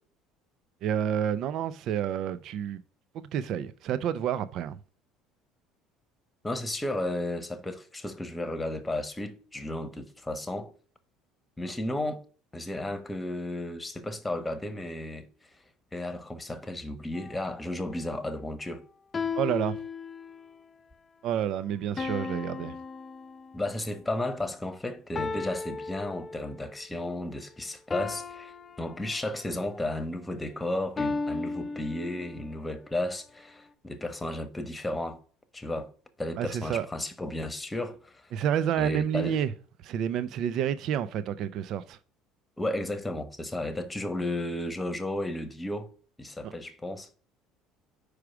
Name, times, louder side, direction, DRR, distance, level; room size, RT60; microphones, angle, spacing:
voice 1, 0.8-2.8 3.1-4.8 19.4-19.7 21.2-22.7 36.4-36.8 38.3-39.5 39.8-42.0 46.4-46.5, right 9 dB, 60° right, 0.5 m, -29 dB
voice 2, 6.4-10.7 11.6-12.2 12.5-15.3 15.9-18.8 23.5-35.2 35.5-35.9 36.2-38.3 38.8-39.4 42.6-45.9 46.2-47.1, left 1 dB, 10° left, 1.1 m, -33 dB
sound 1, 17.1-17.6 19.1-20.6 22.0-23.8 25.1-26.8 27.9-29.5 31.0-32.6, left 4 dB, 30° left, 0.5 m, -36 dB
5.0 x 4.8 x 5.9 m
supercardioid pair, 90°, 0 cm